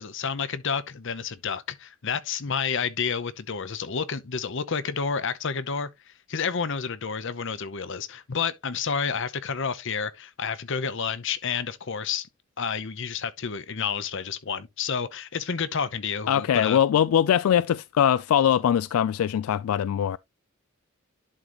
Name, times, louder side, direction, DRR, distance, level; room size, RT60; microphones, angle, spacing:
voice 1, 0.0-5.9 6.3-12.3 12.6-16.8, left 6 dB, 60° left, 0.8 m, -30 dB
voice 2, 16.3-20.2, left 9 dB, 85° left, 0.3 m, -22 dB
11.0 x 3.9 x 3.0 m
head